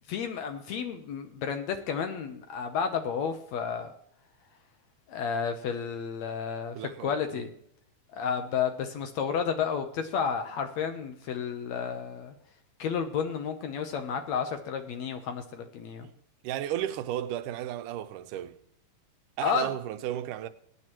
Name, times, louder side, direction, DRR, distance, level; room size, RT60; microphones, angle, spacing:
voice 1, 0.1-3.9 5.1-7.5 8.1-12.3 12.8-16.1 19.4-19.7, left 6 dB, 70° left, 1.9 m, -31 dB
voice 2, 6.8-7.5 16.4-18.6 19.4-20.5, right 12 dB, 85° right, 2.3 m, -34 dB
21.5 x 9.6 x 3.0 m
omnidirectional pair, 3.6 m